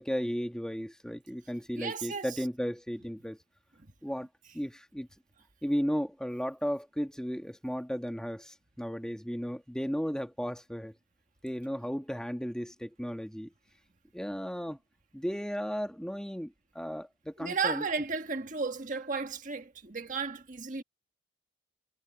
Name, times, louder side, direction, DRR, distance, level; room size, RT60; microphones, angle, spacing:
voice 1, 0.0-3.4 4.0-4.3 4.5-5.1 5.6-10.9 11.4-13.5 14.1-14.8 15.1-17.8, equal, 5° left, 1.4 m, -35 dB
voice 2, 1.8-2.4 17.4-20.8, right 4 dB, 40° right, 1.5 m, -34 dB
head